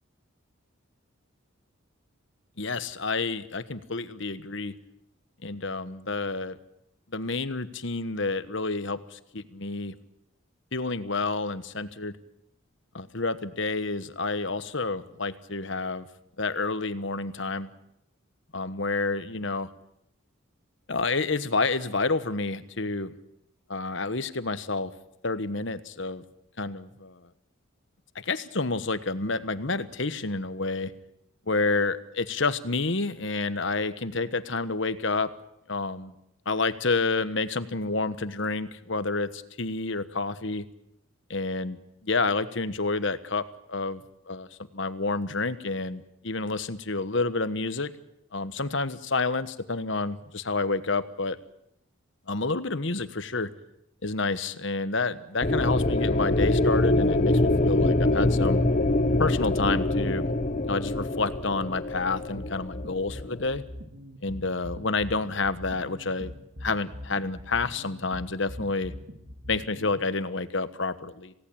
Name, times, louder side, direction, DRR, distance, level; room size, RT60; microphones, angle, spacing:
voice 1, 2.6-4.8 5.4-6.6 7.1-9.9 10.7-12.2 12.9-16.1 16.4-17.7 18.5-19.7 20.9-23.1 23.7-24.9 25.2-26.2 26.6-27.2 28.1-30.9 31.5-35.3 35.7-36.1 36.5-40.7 41.3-44.0 44.3-44.5 44.7-47.9 48.3-51.4 52.3-53.5 54.0-58.6 59.2-60.3 60.7-63.6 64.2-66.3 66.6-68.9 69.5-71.3, left 3 dB, 60° left, 12 dB, 1.3 m, -29 dB
sound 1, 55.4-63.5, left 2 dB, 35° left, 1.1 m, -24 dB
sound 2, 62.4-69.9, left 1 dB, 60° right, 4.1 m, -41 dB
27.5 x 17.5 x 8.7 m, 0.80 s
head